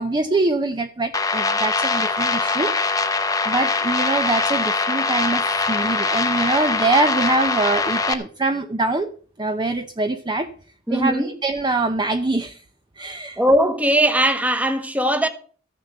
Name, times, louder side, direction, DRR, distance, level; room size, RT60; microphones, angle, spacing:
voice 1, 0.0-2.8 3.5-9.1 9.4-10.5 10.9-12.6 13.0-13.4, right 2 dB, 25° right, 0.6 m, -23 dB
sound 1, 1.1-8.1, left 3 dB, 20° left, 0.9 m, -22 dB
voice 2, 10.9-11.3 13.4-15.3, right 1 dB, 10° right, 1.2 m, -19 dB
14.0 x 7.0 x 6.5 m
head